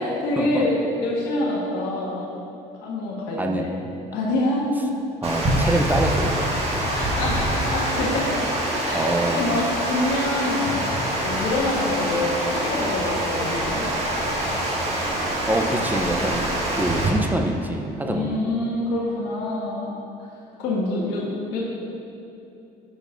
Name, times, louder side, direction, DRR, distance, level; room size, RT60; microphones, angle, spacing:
voice 1, 0.0-2.3 2.8-3.8 4.1-4.9 6.9-8.3 8.8-10.7 11.2-13.9 18.0-20.0 20.6-21.6, left 2 dB, 85° left, -5 dB, 1.3 m, -26 dB
voice 2, 3.4-4.0 5.2-6.6 8.9-9.4 15.5-16.4 16.8-18.4, right 2 dB, 10° right, 3 dB, 0.6 m, -25 dB
Water, 5.2-17.1, right 1 dB, 35° right, 1.6 m, -25 dB
6.7 x 4.6 x 5.8 m, 2.7 s
cardioid pair, 110°, 17 cm